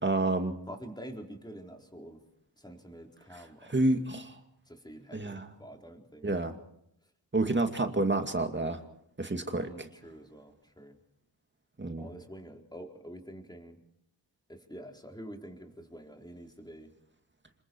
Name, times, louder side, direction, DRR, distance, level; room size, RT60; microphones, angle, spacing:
voice 1, 0.0-0.6 3.7-4.3 5.1-5.5 6.2-6.5 7.3-8.8 9.2-9.7 11.8-12.1, right 2 dB, 25° right, 6 dB, 2.4 m, -28 dB
voice 2, 0.7-2.2 2.6-3.8 4.7-6.4 9.6-11.0 12.0-13.8 14.5-16.9, equal, 10° left, 2 dB, 4.2 m, -47 dB
26.5 x 22.5 x 4.7 m, 0.75 s
cardioid pair, 60°, 45 cm